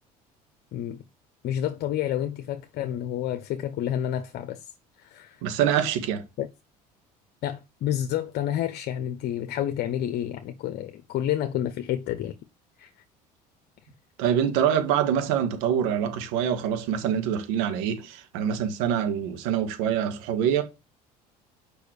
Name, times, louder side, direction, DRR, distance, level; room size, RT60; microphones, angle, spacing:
voice 1, 0.7-1.0 1.4-4.7 5.0-5.4 6.4-6.5 7.4-12.3 12.8-12.9, left 11 dB, 55° left, 1.0 m, -29 dB
voice 2, 5.4-6.2 14.2-20.6, right 9 dB, 75° right, 1.9 m, -25 dB
6.6 x 5.6 x 6.6 m
hypercardioid pair, 70°, 20 cm